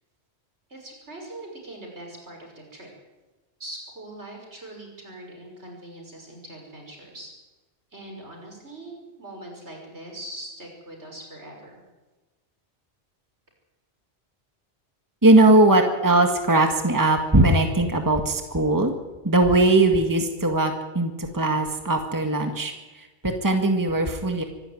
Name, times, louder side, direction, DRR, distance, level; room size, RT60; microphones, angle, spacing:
voice 1, 0.7-2.9 3.6-7.3 7.9-11.8, right 1 dB, 75° right, 0 dB, 6.1 m, -41 dB
voice 2, 15.2-18.9 19.2-24.4, right 2 dB, 15° right, 4 dB, 1.8 m, -20 dB
24.5 x 12.0 x 9.5 m, 1.2 s
omnidirectional pair, 1.2 m